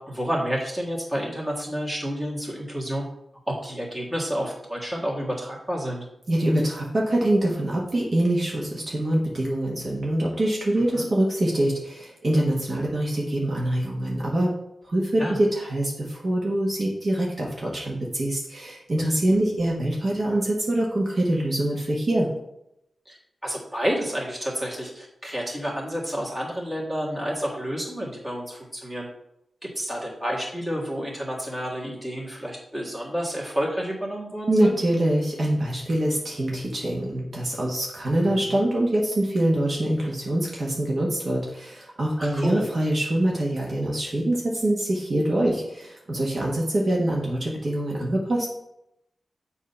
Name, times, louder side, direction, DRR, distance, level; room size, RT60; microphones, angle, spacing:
voice 1, 0.1-3.1 3.5-6.1 10.9-11.1 15.2-15.4 23.1-29.1 29.6-34.8 38.2-38.6 42.2-42.6, equal, 15° right, -3 dB, 1.7 m, -30 dB
voice 2, 6.3-14.5 14.9-22.3 34.5-48.5, right 1 dB, 45° right, -3 dB, 1.1 m, -24 dB
7.4 x 2.8 x 5.5 m, 0.82 s
wide cardioid pair, 120°, 0 cm